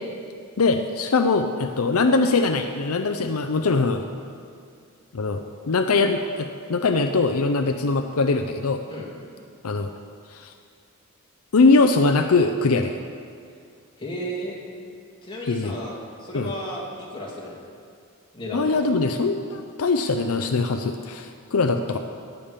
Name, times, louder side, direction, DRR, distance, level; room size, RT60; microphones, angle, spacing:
voice 1, 0.6-4.0 5.1-8.8 9.6-9.9 10.3-10.5 11.5-12.9 15.5-15.8 16.3-16.5 18.5-22.0, left 3 dB, 80° left, 6 dB, 0.6 m, -22 dB
voice 2, 14.0-14.6 15.2-17.6 18.3-18.7, equal, 25° left, -4 dB, 2.5 m, -33 dB
17.0 x 7.2 x 5.2 m, 2.3 s
head